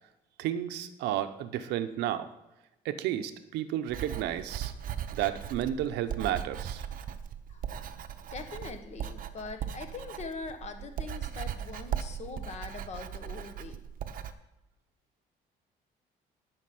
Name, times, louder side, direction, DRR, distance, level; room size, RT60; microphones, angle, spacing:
voice 1, 0.4-2.3 2.8-4.7 5.1-6.8, right 11 dB, 85° right, 10 dB, 0.9 m, -32 dB
Writing, 3.9-14.3, right 9 dB, 55° right, 0.8 m, -38 dB
voice 2, 8.3-13.8, left 4 dB, 40° left, 7 dB, 1.4 m, -42 dB
11.0 x 5.3 x 8.5 m, 0.97 s
cardioid pair, 110°, 17 cm